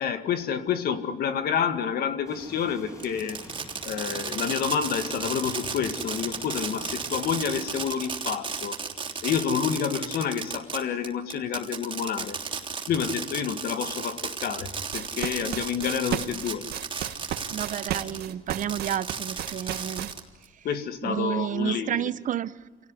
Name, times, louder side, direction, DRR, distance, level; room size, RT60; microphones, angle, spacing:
voice 1, 0.0-3.4 3.8-8.7 9.2-12.4 12.9-16.7 20.6-22.1, left 7 dB, 65° left, 9 dB, 2.0 m, -29 dB
sound 1, 2.3-7.9, left 1 dB, 20° left, 5.4 m, -47 dB
Fireworks, 3.0-18.2 18.6-20.5, right 5 dB, 30° right, 3.3 m, -34 dB
sound 2, 14.7-20.1, right 12 dB, 70° right, 1.6 m, -32 dB
voice 2, 17.5-20.1 21.0-22.6, right 10 dB, 50° right, 16 dB, 0.9 m, -30 dB
28.0 x 18.0 x 9.8 m, 1.4 s
cardioid pair, 110°, 17 cm